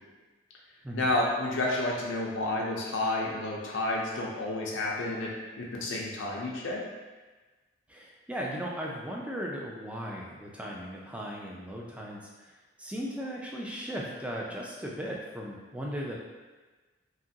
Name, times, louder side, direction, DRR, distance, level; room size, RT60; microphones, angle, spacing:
voice 1, 0.9-5.3 5.6-6.8, left 2 dB, 80° left, -3 dB, 0.5 m, -30 dB
voice 2, 7.9-12.5 12.8-16.2, equal, 5° right, -3 dB, 0.3 m, -37 dB
2.9 x 2.4 x 2.7 m, 1.3 s
head